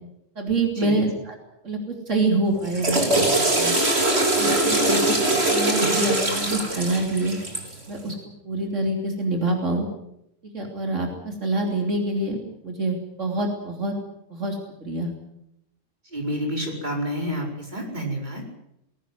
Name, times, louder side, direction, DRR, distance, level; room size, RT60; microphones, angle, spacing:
voice 1, 0.3-1.3 1.6-3.3 3.5-3.7 4.3-7.4 7.9-8.2 8.4-9.9 10.5-13.9 14.3-15.1, right 2 dB, 70° right, 1 dB, 3.5 m, -26 dB
Water / Toilet flush, 2.5-7.8, right 2 dB, 55° right, 4.1 m, -22 dB
voice 2, 4.4-4.8 16.1-18.4, equal, 35° right, 0 dB, 5.3 m, -29 dB
20.0 x 17.5 x 9.4 m, 0.79 s
omnidirectional pair, 1.3 m